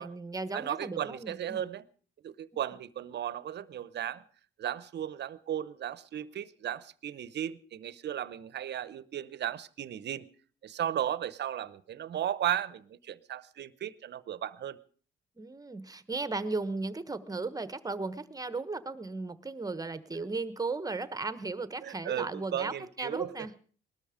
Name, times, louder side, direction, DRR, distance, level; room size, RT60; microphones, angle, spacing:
voice 1, 0.0-1.6 15.4-23.5, right 3 dB, 20° right, 14 dB, 1.2 m, -36 dB
voice 2, 0.5-1.8 2.2-4.2 4.6-10.3 10.6-14.8 21.8-23.3, right 10 dB, 60° right, 17 dB, 0.9 m, -35 dB
20.0 x 13.0 x 5.1 m, 0.44 s
cardioid pair, 90°, 20 cm